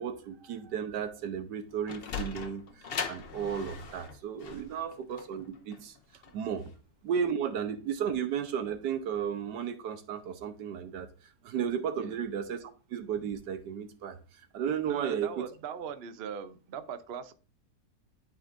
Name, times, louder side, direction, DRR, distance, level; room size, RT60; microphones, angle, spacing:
voice 1, 0.0-6.0 6.3-6.7 7.0-15.5, right 8 dB, 80° right, 1.4 m, -34 dB
Sliding door, 1.6-6.7, left 6 dB, 50° left, 0.7 m, -40 dB
voice 2, 14.9-17.3, right 7 dB, 60° right, 0.7 m, -40 dB
11.5 x 4.4 x 2.5 m
omnidirectional pair, 1.8 m